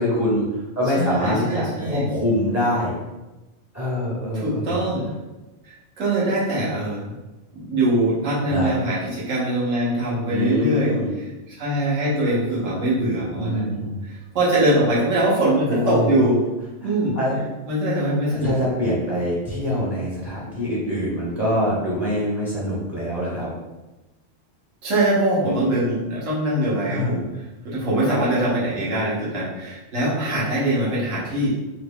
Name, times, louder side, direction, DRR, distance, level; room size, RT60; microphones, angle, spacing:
voice 1, 0.0-2.9 3.7-4.8 8.5-8.7 10.3-11.1 13.4-14.0 15.7-16.2 16.8-17.4 18.3-23.5 26.9-27.2, equal, 15° right, -7 dB, 0.6 m, -24 dB
voice 2, 1.0-2.0 4.3-5.1 5.6-7.1 7.5-11.0 11.5-16.4 16.8-17.1 17.7-18.5 24.8-31.5, right 1 dB, 85° right, -6 dB, 1.3 m, -22 dB
3.1 x 2.3 x 3.4 m, 1.1 s
omnidirectional pair, 1.3 m